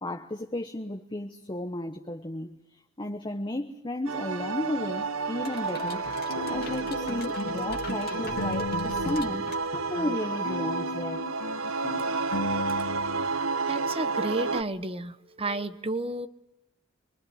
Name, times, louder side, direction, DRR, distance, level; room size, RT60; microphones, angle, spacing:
voice 1, 0.0-2.6 3.0-6.1 6.5-9.5 9.9-11.3, left 1 dB, 20° left, 5 dB, 1.1 m, -33 dB
sound 1, 4.1-14.6, right 4 dB, 75° right, 1.0 m, -31 dB
sound 2, 5.3-9.2 9.5-13.3, left 2 dB, 85° left, 1.3 m, -37 dB
sound 3, 5.4-10.3, left 2 dB, 45° left, 2.4 m, -39 dB
voice 2, 13.7-16.3, right 2 dB, 25° right, 11 dB, 1.0 m, -32 dB
25.5 x 23.5 x 9.5 m, 0.84 s
head